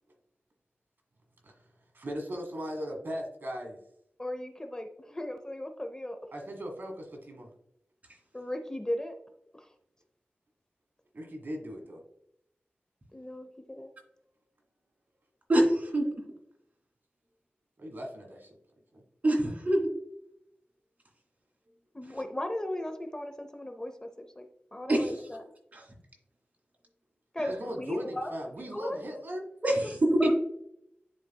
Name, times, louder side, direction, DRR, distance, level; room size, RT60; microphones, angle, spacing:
voice 1, 1.9-3.8 6.3-7.5 11.1-12.0 17.8-18.5 18.9-19.0 21.7-21.8 27.4-29.4, equal, 60° right, 2 dB, 1.5 m, -38 dB
voice 2, 4.2-6.2 8.3-9.2 9.5-9.7 13.1-13.9 21.9-25.4 27.3-28.3 28.7-29.0 30.2-30.3, left 1 dB, 20° left, 5 dB, 0.6 m, -37 dB
voice 3, 15.5-16.1 19.2-19.8 24.9-25.1 25.7-25.8 29.6-30.3, right 1 dB, 40° right, -1 dB, 2.5 m, -24 dB
11.0 x 3.9 x 2.2 m, 0.75 s
wide cardioid pair, 100°, 4 cm